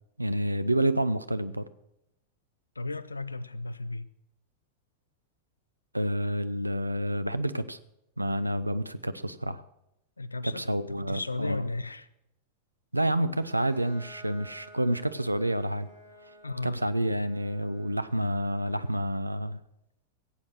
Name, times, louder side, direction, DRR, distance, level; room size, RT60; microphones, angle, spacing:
voice 1, 0.2-1.6 5.9-7.8 8.2-9.6 10.4-11.7 12.9-15.9 16.6-19.6, right 1 dB, 85° right, 0.6 m, -29 dB
voice 2, 2.8-4.1 10.2-12.1 16.4-16.8, left 2 dB, 80° left, 0.6 m, -35 dB
Bowed string instrument, 13.3-18.9, equal, 55° right, 3.1 m, -52 dB
16.5 x 8.5 x 6.4 m
figure-of-eight pair, 90°, 0 cm